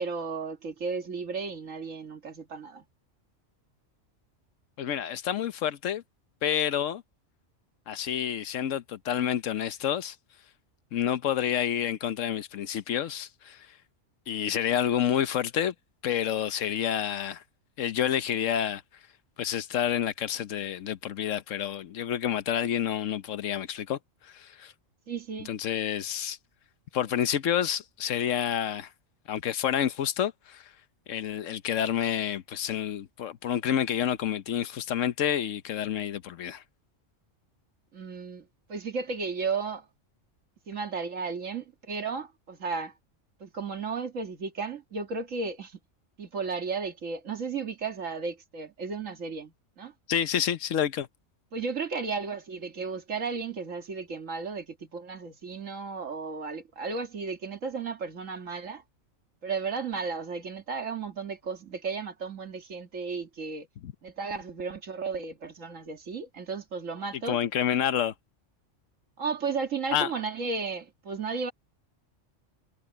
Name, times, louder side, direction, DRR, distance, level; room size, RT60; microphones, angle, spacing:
voice 1, 0.0-2.8 25.1-25.5 37.9-39.9 40.7-42.9 43.4-45.8 46.2-49.9 51.5-58.8 59.4-63.7 64.0-67.4 69.2-71.5, right 5 dB, 85° right, 2.3 m, -34 dB
voice 2, 4.8-6.0 6.4-7.0 7.9-10.1 10.9-13.7 14.3-15.7 16.0-17.4 17.8-18.8 19.4-24.0 24.2-24.7 25.5-26.4 26.9-28.9 29.3-30.6 31.1-36.6 50.1-51.1 63.8-63.9 67.3-68.1 69.9-70.1, left 9 dB, 80° left, 1.2 m, -29 dB
omnidirectional pair, 1.3 m